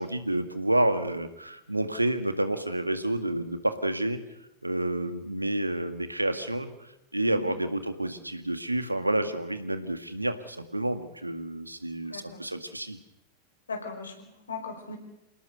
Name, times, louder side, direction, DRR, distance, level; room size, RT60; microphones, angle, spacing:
voice 1, 0.0-4.2 4.6-6.7 7.1-13.0, right 1 dB, 85° right, 9 dB, 1.9 m, -29 dB
voice 2, 7.2-7.5 12.0-12.4 13.7-15.0, left 4 dB, 75° left, 5 dB, 5.3 m, -38 dB
27.5 x 18.0 x 6.9 m, 0.87 s
figure-of-eight pair, 90°, 0 cm